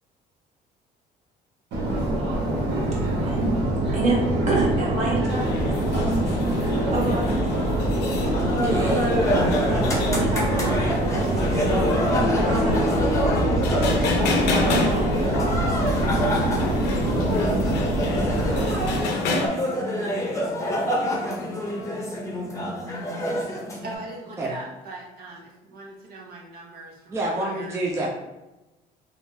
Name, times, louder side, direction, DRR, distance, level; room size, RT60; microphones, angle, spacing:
Subway metro underground, 1.7-19.0, right 1 dB, 85° right, 1.1 m, -24 dB
voice 1, 3.2-3.6 3.9-6.3 6.9-7.7 9.6-10.8 11.1-11.9 12.1-13.2 14.3-15.6, right 2 dB, 45° right, -3 dB, 1.2 m, -29 dB
sound 1, 5.3-19.5, left 3 dB, 80° left, 0.6 m, -30 dB
sound 2, 8.2-24.0, equal, 20° left, 0.7 m, -27 dB
voice 2, 8.6-9.1 24.4-24.5 27.1-28.1, right 1 dB, 15° right, -3 dB, 0.4 m, -27 dB
voice 3, 23.8-28.1, right 2 dB, 65° right, -3 dB, 0.7 m, -41 dB
3.5 x 2.4 x 2.6 m, 1.0 s
cardioid pair, 110°, 17 cm